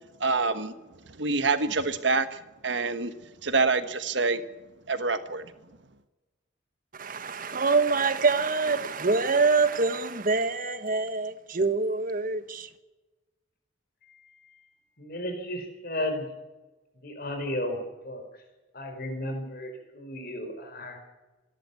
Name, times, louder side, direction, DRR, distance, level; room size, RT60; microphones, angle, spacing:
voice 1, 0.2-0.7 1.2-3.1 3.4-4.4 4.9-5.4, right 3 dB, 70° right, 1.5 m, -26 dB
voice 2, 6.9-12.7, right 4 dB, 45° right, 1.4 m, -25 dB
voice 3, 14.1-14.5 15.0-16.3 17.0-17.8 18.0-18.4 18.7-21.0, left 1 dB, 55° left, 4.8 m, -34 dB
27.0 x 13.0 x 8.4 m
head